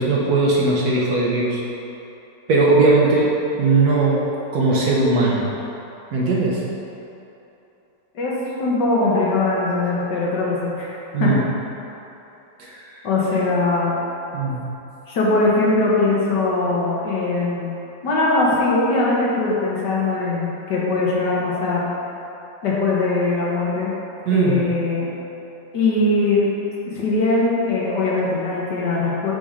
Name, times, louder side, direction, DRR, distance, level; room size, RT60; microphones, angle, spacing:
voice 1, 0.0-1.6 2.5-3.3 3.6-4.2 4.5-5.5 6.1-6.6 11.1-11.4 12.6-12.8 14.3-14.6 24.3-24.6, right 3 dB, 65° right, -4 dB, 1.4 m, -18 dB
voice 2, 8.6-11.3 13.0-14.0 15.1-17.7 18.0-21.9 22.6-23.9 24.3-25.1 25.7-26.5 26.9-29.3, left 2 dB, 75° left, -5 dB, 1.7 m, -21 dB
5.8 x 3.7 x 4.9 m, 3.0 s
omnidirectional pair, 1.9 m